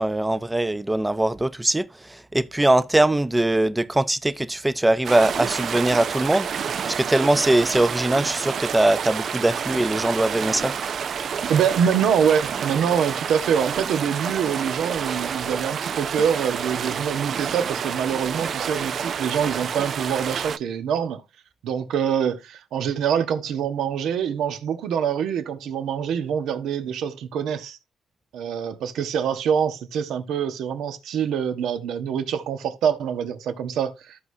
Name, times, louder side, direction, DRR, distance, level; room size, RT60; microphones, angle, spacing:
voice 1, 0.0-10.7, right 1 dB, 10° right, 0.6 m, -21 dB
sound 1, 5.0-20.6, right 7 dB, 55° right, 0.5 m, -29 dB
voice 2, 11.5-21.2 21.6-27.8 28.3-34.2, right 8 dB, 80° right, 1.1 m, -25 dB
14.5 x 4.8 x 2.7 m
cardioid pair, 90°, 0 cm